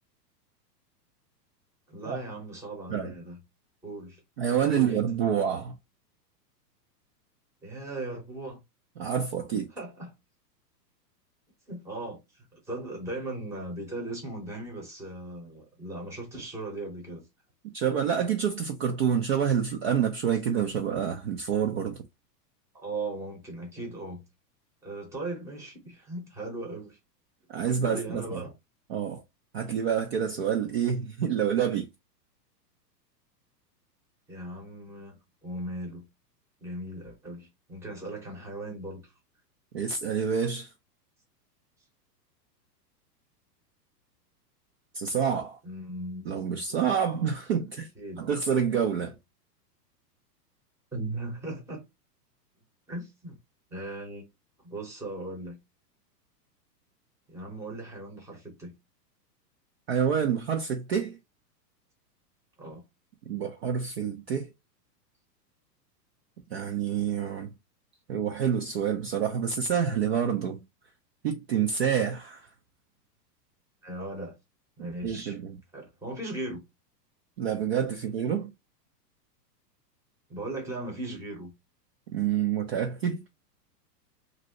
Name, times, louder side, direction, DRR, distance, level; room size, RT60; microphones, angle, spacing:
voice 1, 1.9-3.4 3.8-4.2 4.7-5.1 7.6-8.6 9.5-10.1 11.7-17.2 22.7-24.2 24.8-27.0 27.8-28.5 34.3-36.1 36.6-39.1 45.6-46.2 46.7-46.8 48.0-48.2 50.9-51.8 52.9-53.4 53.7-54.2 54.6-55.6 57.3-58.7 62.6-62.8 73.8-74.3 74.8-75.4 75.7-76.6 80.3-81.5, right 2 dB, 5° right, 0.8 m, -38 dB
voice 2, 4.4-5.7 9.0-9.7 17.7-22.0 27.5-28.4 28.9-29.2 29.5-31.9 39.7-40.7 44.9-45.6 46.3-47.9 48.2-49.2 59.9-61.2 63.3-64.5 66.5-67.5 68.1-70.6 71.2-72.5 75.0-75.6 77.4-78.5 82.1-83.2, right 8 dB, 45° right, 0.4 m, -27 dB
2.9 x 2.6 x 2.8 m
hypercardioid pair, 150°, 50 cm